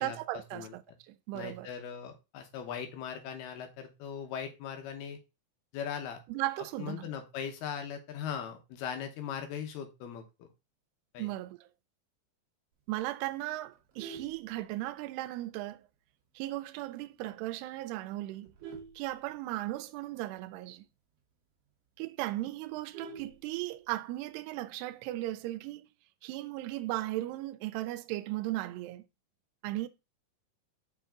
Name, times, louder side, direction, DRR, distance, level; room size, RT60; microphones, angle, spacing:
voice 1, 0.0-1.7 6.3-7.1 11.2-11.6 12.9-15.9 16.4-18.5 19.0-20.8 22.0-25.9 26.2-29.1 29.6-29.9, right 16 dB, 85° right, 2.6 m, -36 dB
voice 2, 1.3-5.2 5.7-6.2 6.8-10.5 11.1-11.3, left 8 dB, 75° left, 3.0 m, -39 dB
Vehicle horn car horn honking, 13.7-15.2 15.7-15.9 16.2-16.3 16.7-16.8 17.1-17.5 18.0-19.9 20.2-20.3 20.6-20.7 21.1-21.2 21.6-21.7 21.9-24.0 25.2-25.6, right 5 dB, 65° right, 1.5 m, -48 dB
6.3 x 5.4 x 3.7 m
omnidirectional pair, 4.7 m